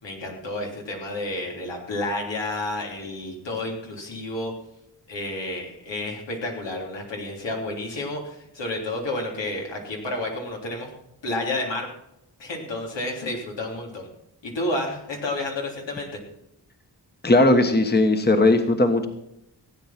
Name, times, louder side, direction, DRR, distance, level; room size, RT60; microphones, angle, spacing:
voice 1, 0.0-4.5 5.1-10.9 11.2-11.9 12.4-14.1 14.4-16.1, left 2 dB, 85° left, 0 dB, 3.4 m, -30 dB
voice 2, 17.2-19.1, left 2 dB, 25° left, 7 dB, 1.3 m, -18 dB
16.5 x 9.0 x 5.9 m, 0.81 s
wide cardioid pair, 90°, 43 cm